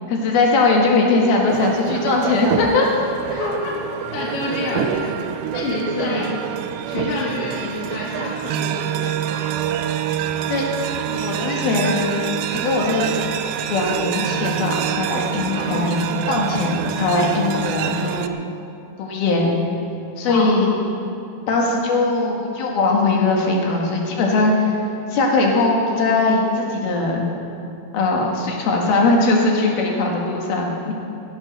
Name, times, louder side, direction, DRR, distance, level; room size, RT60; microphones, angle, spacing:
voice 1, 0.1-2.9 3.3-3.6 4.7-4.9 6.0-6.3 10.5-10.7 11.1-12.2 12.5-13.1 13.7-16.0 16.3-18.3 19.0-19.5 20.2-20.7 21.5-24.7 25.1-27.3 27.9-30.9, left 3 dB, 80° left, -1 dB, 3.7 m, -20 dB
sound 1, 1.5-18.3, right 10 dB, 85° right, 2.4 m, -26 dB
voice 2, 3.4-3.7 4.1-5.1 5.5-6.3 6.8-9.4 15.5-16.1 20.3-20.6, left 2 dB, 45° left, -4 dB, 2.5 m, -28 dB
17.5 x 8.9 x 6.6 m, 2.8 s
omnidirectional pair, 4.3 m